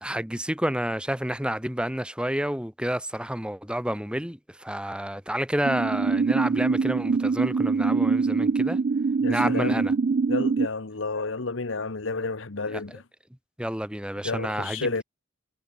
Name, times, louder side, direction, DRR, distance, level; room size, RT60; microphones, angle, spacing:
voice 1, 0.0-8.8 9.3-9.9 12.7-12.8 13.6-14.9, equal, 5° right, 2.6 m, -29 dB
sound 1, 5.6-10.7, right 4 dB, 45° right, 0.4 m, -24 dB
voice 2, 9.2-9.9 10.3-13.0 14.2-15.0, left 3 dB, 75° left, 1.2 m, -31 dB
head